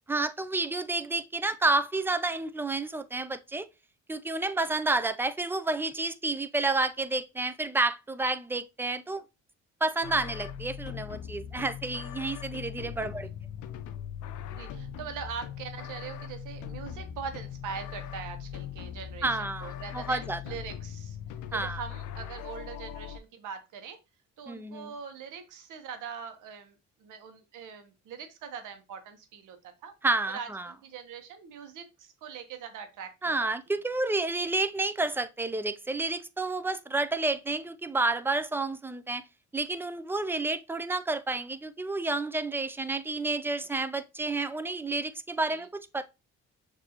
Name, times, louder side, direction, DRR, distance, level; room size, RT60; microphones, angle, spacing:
voice 1, 0.1-3.7 4.1-9.2 9.8-13.3 19.2-20.4 21.5-21.8 24.5-24.9 30.0-30.7 33.2-39.2 39.5-45.7 45.9-46.0, right 2 dB, 5° right, 0.4 m, -30 dB
sound 1, 10.0-23.2, left 9 dB, 80° left, 0.5 m, -40 dB
voice 2, 14.5-19.3 19.6-21.2 21.5-24.0 24.4-29.9 30.3-33.5 45.5-45.7, right 6 dB, 85° right, 1.0 m, -42 dB
6.4 x 2.7 x 2.9 m
cardioid pair, 90°, 30 cm